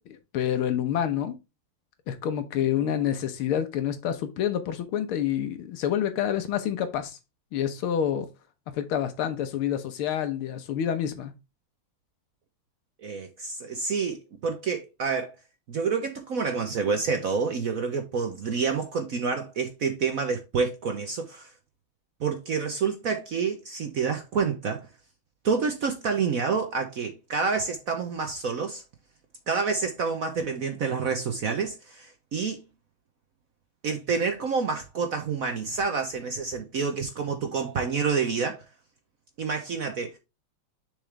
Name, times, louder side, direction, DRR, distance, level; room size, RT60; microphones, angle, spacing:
voice 1, 0.3-1.4 2.1-7.2 7.5-8.3 8.7-11.3, left 9 dB, 80° left, 1.9 m, -28 dB
voice 2, 13.0-15.3 15.7-21.5 22.2-24.8 25.4-28.8 29.5-32.6 33.8-38.6 39.4-40.2, right 5 dB, 60° right, 0.9 m, -28 dB
6.7 x 5.0 x 3.2 m
omnidirectional pair, 2.3 m